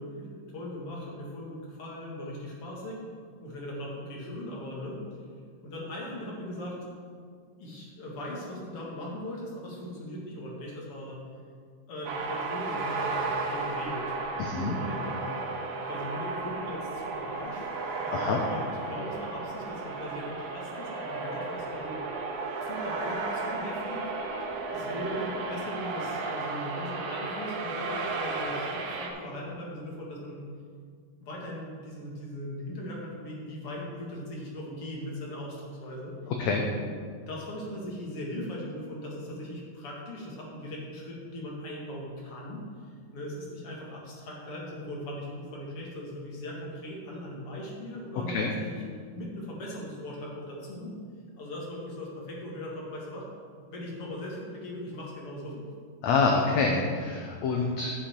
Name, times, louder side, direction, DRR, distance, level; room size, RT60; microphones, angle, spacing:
voice 1, 0.0-3.0 3.4-5.0 5.6-6.9 7.6-11.2 11.9-14.2 14.6-15.3 15.8-17.7 18.0-22.0 22.6-24.0 24.7-30.4 31.2-36.1 37.2-42.6 43.1-48.8 49.2-50.9 51.4-53.3 53.7-55.6, left 1 dB, 50° left, -3 dB, 2.4 m, -39 dB
sound 1, 12.1-29.1, right 3 dB, 85° right, 2.7 m, -34 dB
voice 2, 14.4-14.8 18.1-18.4 36.4-36.6 48.3-48.5 56.0-57.9, left 4 dB, 75° left, 1 dB, 1.6 m, -26 dB
10.0 x 7.8 x 4.4 m, 2.1 s
omnidirectional pair, 3.9 m